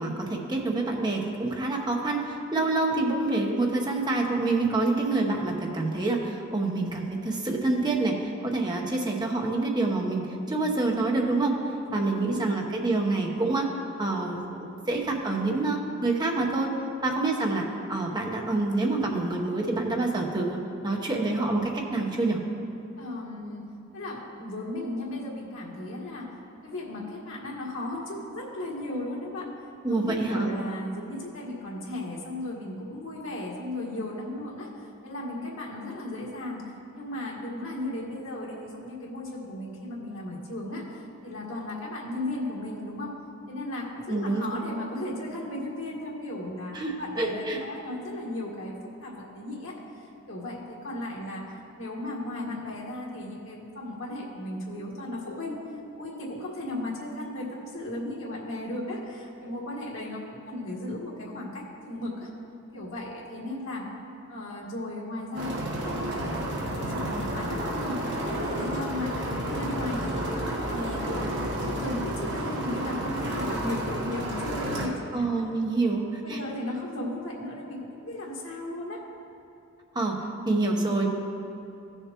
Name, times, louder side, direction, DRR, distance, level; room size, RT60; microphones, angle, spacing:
voice 1, 0.0-11.5 11.9-13.7 14.0-16.7 17.0-20.6 20.8-22.4 29.8-30.5 44.1-44.4 46.7-47.6 75.1-76.4 79.9-81.1, right 2 dB, 20° right, 0 dB, 0.9 m, -27 dB
voice 2, 11.8-12.5 23.0-23.6 23.9-26.3 26.6-29.5 29.9-34.7 35.0-43.1 43.5-51.4 51.8-55.6 55.9-62.3 62.7-63.9 64.3-71.3 71.6-75.2 76.2-79.0, left 1 dB, 80° left, -3 dB, 1.8 m, -36 dB
sound 1, 65.4-74.9, right 1 dB, 55° right, 1.3 m, -31 dB
15.5 x 6.7 x 3.0 m, 2.7 s
head